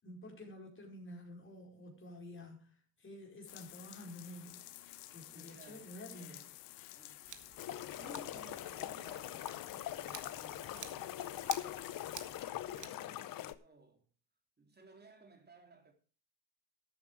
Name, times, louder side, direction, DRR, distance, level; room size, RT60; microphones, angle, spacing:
voice 1, 0.0-4.6 5.1-6.4, left 1 dB, 25° left, 5.0 m, -50 dB
sound 1, 3.5-12.5, left 15 dB, 85° left, 1.2 m, -53 dB
voice 2, 5.3-6.5 6.9-9.5 9.8-14.1 14.6-15.9, right 3 dB, 20° right, 3.2 m, -59 dB
Scissors, 7.2-12.9, right 8 dB, 40° right, 1.8 m, -52 dB
sound 2, 7.6-13.5, left 13 dB, 45° left, 0.9 m, -42 dB
13.0 x 8.7 x 4.9 m
supercardioid pair, 90°, 48 cm